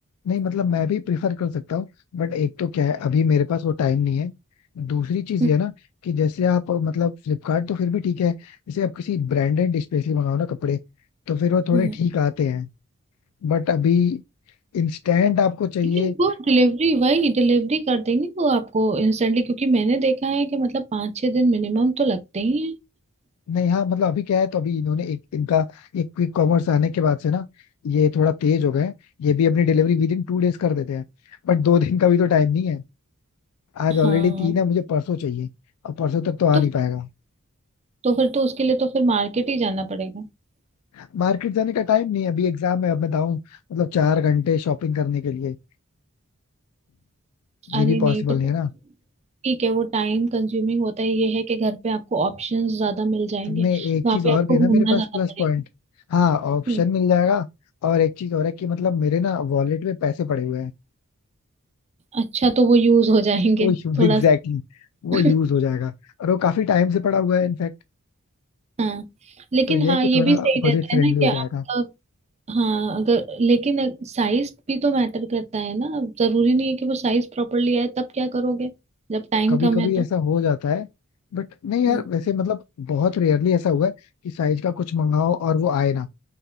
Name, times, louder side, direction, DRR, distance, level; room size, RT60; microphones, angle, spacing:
voice 1, 0.3-1.9 2.1-4.3 4.8-5.7 6.0-10.8 11.3-12.7 13.4-14.2 14.7-16.1 23.5-27.5 27.8-28.9 29.2-31.0 31.4-32.8 33.8-35.5 35.8-37.1 40.9-45.6 47.7-48.7 53.5-55.6 56.1-57.5 57.8-60.7 63.6-64.6 65.0-65.9 66.2-67.7 69.7-71.6 79.5-80.9 81.3-83.9 84.2-86.1, left 7 dB, 85° left, 0.3 m, -22 dB
voice 2, 16.0-22.8 34.0-34.5 36.5-36.6 38.0-40.3 47.7-48.2 49.4-55.1 56.7-56.8 62.1-64.2 65.1-65.2 68.8-69.0 69.5-71.9 72.5-78.7 79.1-80.0 81.9-82.0, right 3 dB, 30° right, 0.5 m, -22 dB
5.6 x 3.4 x 2.2 m
head